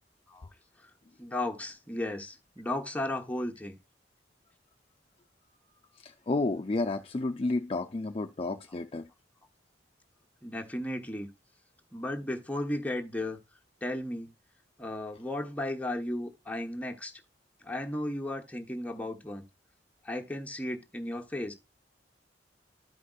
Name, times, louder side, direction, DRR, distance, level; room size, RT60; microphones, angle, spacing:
voice 1, 1.2-3.8 8.7-8.8 10.4-11.3 11.9-13.4 13.8-14.3 14.8-17.1 17.6-19.4 20.0-21.5, left 1 dB, 10° left, 1.0 m, -35 dB
voice 2, 6.0-9.1, left 2 dB, 30° left, 0.4 m, -31 dB
13.0 x 5.1 x 2.4 m
head